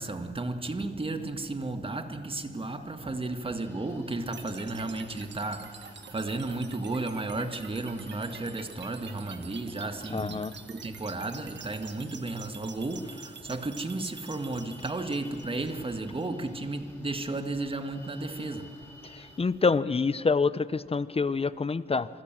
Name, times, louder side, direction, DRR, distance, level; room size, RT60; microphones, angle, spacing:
voice 1, 0.0-18.9, right 2 dB, 25° right, 1.9 m, -34 dB
sound 1, 3.5-19.4, left 1 dB, 10° left, 7.7 m, -54 dB
sound 2, 4.3-16.3, right 6 dB, 60° right, 1.5 m, -48 dB
voice 2, 10.1-10.5 19.0-22.1, left 4 dB, 30° left, 0.7 m, -27 dB
26.0 x 25.0 x 7.6 m
cardioid pair, 95°, 20 cm